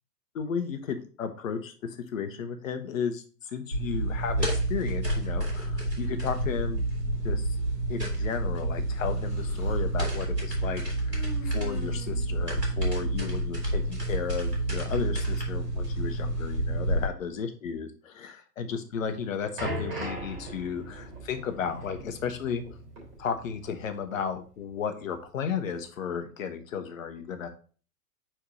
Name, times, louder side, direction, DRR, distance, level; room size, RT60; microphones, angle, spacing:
voice 1, 0.3-6.8 7.2-7.6 7.9-22.6 23.2-27.5, left 7 dB, 55° left, 8 dB, 1.0 m, -34 dB
sound 1, 3.7-17.1, right 1 dB, 85° right, 2.3 m, -29 dB
Human voice, 9.0-9.9 11.1-13.8, left 2 dB, 5° right, 3.0 m, -46 dB
sound 2, 19.0-23.9 24.1-24.3 25.0-25.1, right 1 dB, 35° right, 3.1 m, -39 dB
4.7 x 4.4 x 5.0 m, 0.40 s
figure-of-eight pair, 100°, 47 cm